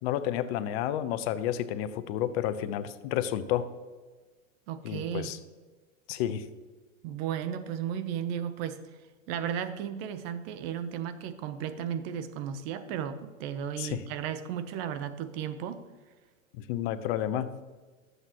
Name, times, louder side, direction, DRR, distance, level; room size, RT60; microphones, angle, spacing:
voice 1, 0.0-3.7 4.8-5.4 6.1-6.4 13.8-14.0 16.5-17.5, left 11 dB, 50° left, 13 dB, 0.8 m, -31 dB
voice 2, 4.7-5.3 7.0-8.8 9.3-15.8, right 9 dB, 50° right, 11 dB, 0.9 m, -34 dB
12.5 x 8.1 x 3.0 m, 1.4 s
hypercardioid pair, 110°, 39 cm